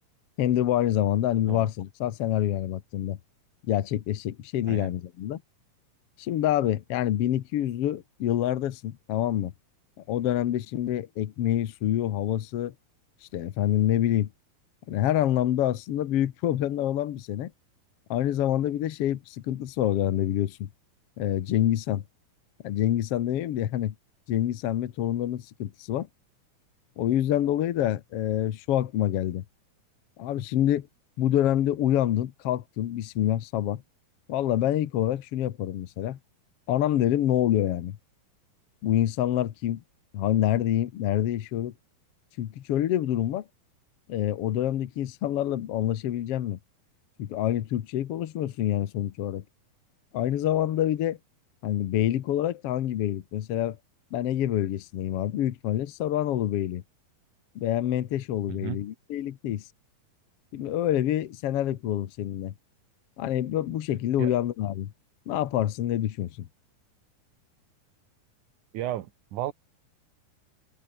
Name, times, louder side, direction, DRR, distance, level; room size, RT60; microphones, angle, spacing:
voice 1, 0.4-3.2 3.7-5.4 6.2-9.5 10.0-12.7 13.3-14.3 14.9-17.5 18.1-20.7 21.2-22.0 22.6-23.9 24.3-26.1 27.0-29.4 30.2-30.9 31.2-33.8 34.3-36.2 36.7-38.0 38.8-39.8 40.1-41.7 42.4-43.4 44.1-46.6 47.2-49.4 50.1-51.2 51.6-53.8 54.1-56.8 57.5-59.6 60.5-62.5 63.2-64.9 65.3-66.5, left 12 dB, 70° left, 1.4 m, -26 dB
voice 2, 58.5-58.8 64.2-64.3 68.7-69.5, right 13 dB, 65° right, 2.4 m, -33 dB
omnidirectional pair, 4.3 m